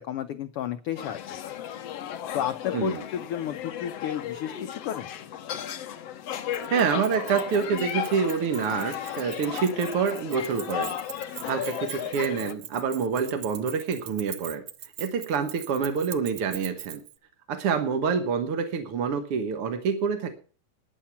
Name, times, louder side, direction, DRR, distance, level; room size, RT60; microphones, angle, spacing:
voice 1, 0.0-1.6 2.3-5.1, left 10 dB, 80° left, 9 dB, 1.3 m, -32 dB
sound 1, 1.0-12.5, left 10 dB, 65° left, 1.9 m, -35 dB
Keys jangling, 6.5-17.2, right 11 dB, 75° right, 1.1 m, -42 dB
voice 2, 6.7-10.9 11.2-14.6 15.0-17.0 17.5-20.3, right 6 dB, 55° right, 6 dB, 1.8 m, -27 dB
13.0 x 10.0 x 5.8 m, 0.39 s
omnidirectional pair, 3.4 m